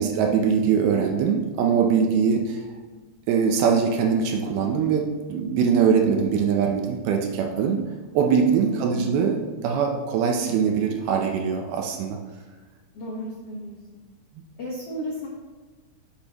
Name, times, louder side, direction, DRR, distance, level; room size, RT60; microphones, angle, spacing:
voice 1, 0.0-2.6 3.3-7.8 8.1-12.2, right 6 dB, 75° right, 3 dB, 2.5 m, -22 dB
voice 2, 8.7-9.1 12.9-13.7 14.6-15.3, equal, 75° left, -4 dB, 1.4 m, -34 dB
8.6 x 8.2 x 3.0 m, 1.4 s
omnidirectional pair, 4.9 m